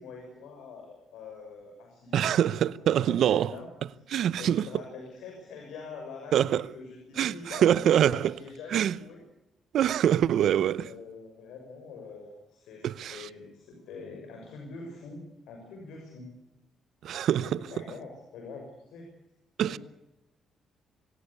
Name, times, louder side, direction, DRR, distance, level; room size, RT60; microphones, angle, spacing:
voice 1, 0.0-2.4 3.1-3.7 4.4-9.2 10.7-16.3 17.7-19.1 19.7-19.8, left 4 dB, 85° left, 6.1 m, -44 dB
voice 2, 2.1-3.5 4.1-4.7 6.3-6.7 7.2-8.4 8.7-9.0 9.7-10.9 12.8-13.3 17.0-17.8 19.6-19.8, right 10 dB, 70° right, 0.7 m, -25 dB
25.5 x 17.0 x 8.4 m
cardioid pair, 90°, 0 cm